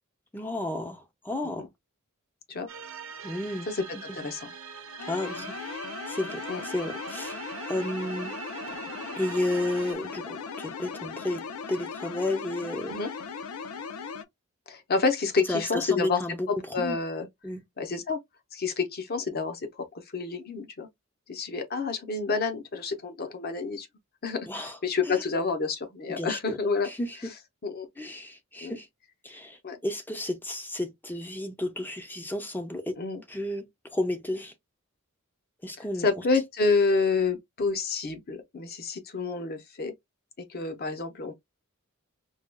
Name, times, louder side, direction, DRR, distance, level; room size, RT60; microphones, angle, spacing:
voice 1, 0.3-1.7 3.2-3.7 5.1-5.8 6.1-7.4 7.7-8.3 9.2-12.9 15.5-17.0 17.4-17.6 24.5-24.8 25.1-25.2 26.1-26.6 26.8-27.2 28.0-28.9 29.2-33.0 33.3-33.6 33.9-34.5 35.6-36.1, left 1 dB, 10° left, 0.4 m, -32 dB
sound 1, 2.7-9.9, right 6 dB, 70° right, 0.7 m, -42 dB
voice 2, 3.7-4.5 6.5-6.6 12.9-13.1 14.7-16.2 16.5-17.3 17.8-18.2 18.5-20.9 21.3-23.9 24.2-26.9 27.6-27.9 28.6-28.8 29.6-29.8 33.0-33.2 35.8-39.9 40.4-41.4, left 4 dB, 45° left, 0.7 m, -29 dB
sound 2, 5.0-14.2, left 5 dB, 90° left, 0.5 m, -38 dB
4.7 x 2.2 x 2.2 m
head